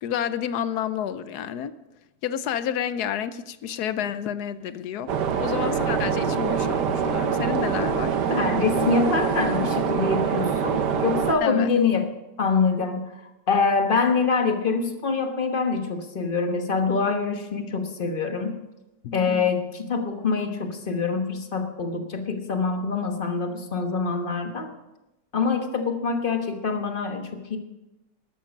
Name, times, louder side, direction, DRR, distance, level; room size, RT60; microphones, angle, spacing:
voice 1, 0.0-1.7 2.2-5.1 5.4-8.2 11.4-11.7 19.0-19.5, left 9 dB, 75° left, 14 dB, 1.1 m, -30 dB
sound 1, 5.1-11.3, right 6 dB, 85° right, 1.6 m, -24 dB
voice 2, 8.3-12.1 12.4-13.0 13.5-18.5 19.1-24.7 25.3-27.6, left 4 dB, 35° left, 5 dB, 1.4 m, -25 dB
12.5 x 12.0 x 5.2 m, 0.99 s
omnidirectional pair, 1.8 m